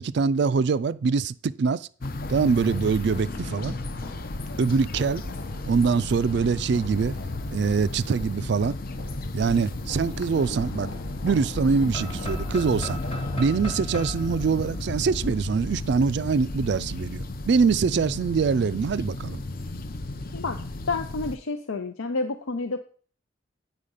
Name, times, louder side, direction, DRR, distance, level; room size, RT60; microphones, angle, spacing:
voice 1, 0.0-1.9 2.3-3.8 4.6-5.2 5.6-7.1 7.5-8.8 9.3-10.9 11.2-13.0 13.4-19.4, right 5 dB, 55° right, 0.3 m, -24 dB
sound 1, 2.0-13.5, left 2 dB, 70° left, 1.0 m, -42 dB
sound 2, 2.0-21.4, left 2 dB, 45° left, 0.6 m, -34 dB
sound 3, 11.9-15.8, left 1 dB, 30° left, 1.3 m, -40 dB
voice 2, 20.9-22.8, left 3 dB, 85° left, 0.7 m, -29 dB
9.0 x 5.0 x 5.5 m
head